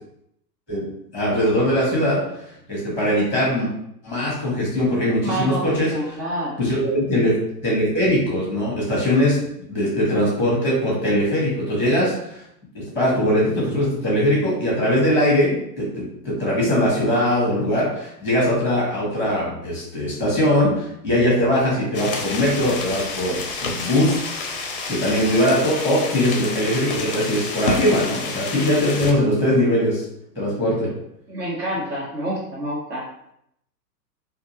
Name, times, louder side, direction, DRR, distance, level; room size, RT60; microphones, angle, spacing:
voice 1, 1.1-2.2 2.7-3.7 4.0-5.9 6.6-9.4 9.7-12.1 12.7-24.2 24.9-30.0 30.4-30.9, left 1 dB, 5° right, -4 dB, 0.6 m, -21 dB
voice 2, 5.2-6.6 31.3-33.0, right 1 dB, 75° right, -8 dB, 1.1 m, -28 dB
sound 1, 21.9-29.1, left 3 dB, 35° left, 0.4 m, -29 dB
2.5 x 2.3 x 2.7 m, 0.74 s
figure-of-eight pair, 115°, 50 cm